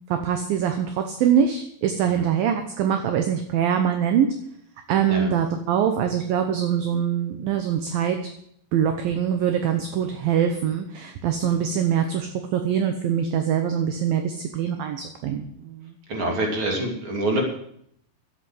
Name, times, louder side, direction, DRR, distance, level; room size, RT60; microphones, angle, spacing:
voice 1, 0.1-4.3 4.9-8.3 8.7-15.9, right 8 dB, 70° right, 6 dB, 2.3 m, -23 dB
voice 2, 16.1-17.4, right 1 dB, 30° right, 0 dB, 3.2 m, -26 dB
13.0 x 8.4 x 7.8 m, 0.68 s
omnidirectional pair, 5.1 m